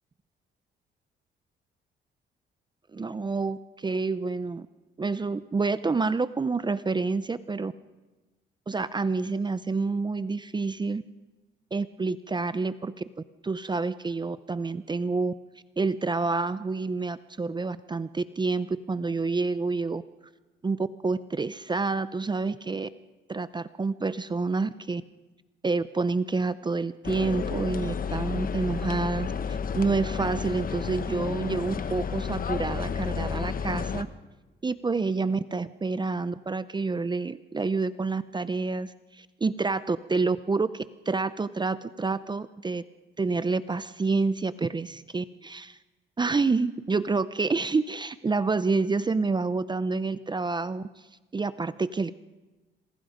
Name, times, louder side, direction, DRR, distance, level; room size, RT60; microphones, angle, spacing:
voice 1, 2.9-4.7 5.0-7.7 8.7-11.0 11.7-12.9 13.4-15.3 15.8-20.0 20.6-22.9 23.3-25.0 25.6-34.1 34.6-42.8 43.2-45.8 46.2-50.8 51.3-52.1, right 4 dB, 20° right, 15 dB, 0.6 m, -28 dB
sound 1, 27.0-34.0, left 6 dB, 45° left, 1.1 m, -31 dB
27.0 x 20.5 x 5.1 m, 1.2 s
cardioid pair, 90°, 20 cm